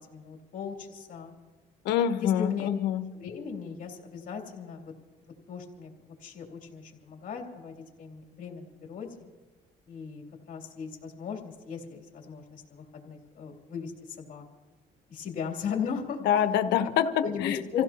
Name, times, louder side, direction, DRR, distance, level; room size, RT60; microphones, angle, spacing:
voice 1, 0.1-1.4 2.2-2.7 3.1-4.9 5.5-9.3 9.9-14.4 15.1-16.2 17.2-17.8, left 6 dB, 55° left, 1 dB, 2.9 m, -37 dB
voice 2, 1.8-3.0 16.3-17.6, left 9 dB, 85° left, 9 dB, 1.0 m, -25 dB
27.5 x 15.5 x 2.9 m, 1.3 s
cardioid pair, 110°, 17 cm